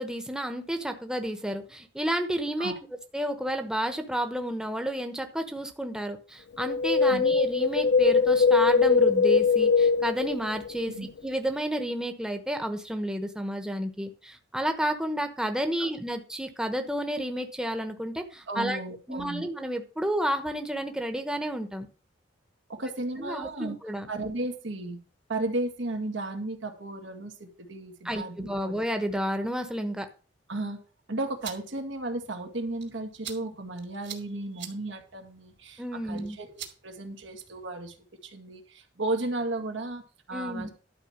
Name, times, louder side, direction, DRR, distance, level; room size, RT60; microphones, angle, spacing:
voice 1, 0.0-2.7 3.1-10.9 11.2-18.8 19.1-21.9 23.2-24.1 28.0-30.1 35.8-36.4 40.3-40.7, equal, 5° right, 5 dB, 1.0 m, -31 dB
Wind, 6.6-10.9 11.2-11.3, left 5 dB, 65° left, 0.4 m, -22 dB
voice 2, 18.5-19.5 22.7-23.8 24.1-25.0 25.3-28.7 30.5-30.8 31.1-37.9 38.2-40.0 40.3-40.7, right 2 dB, 90° right, 4 dB, 2.1 m, -34 dB
sound 1, 31.2-37.7, right 9 dB, 65° right, 2.7 m, -47 dB
12.0 x 4.5 x 7.2 m, 0.36 s
head